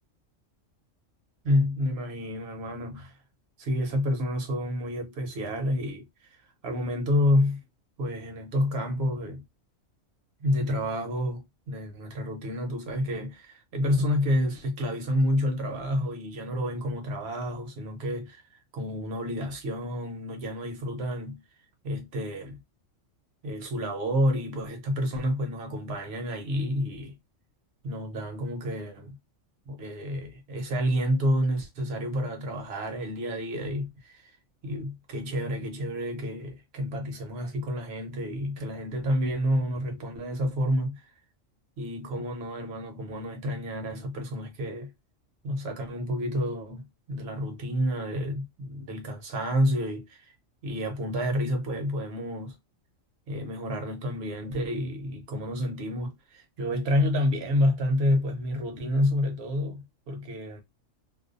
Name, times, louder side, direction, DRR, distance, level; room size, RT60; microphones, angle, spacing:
voice 1, 1.4-3.1 3.6-6.0 6.6-7.6 8.0-9.4 10.4-18.4 18.7-21.4 21.8-22.6 23.4-27.2 27.8-29.2 29.7-34.3 34.6-41.1 41.8-44.9 45.4-50.2 50.6-52.5 53.3-60.6, equal, 60° right, 1.0 m, -29 dB
2.5 x 2.2 x 2.4 m
omnidirectional pair, 1.3 m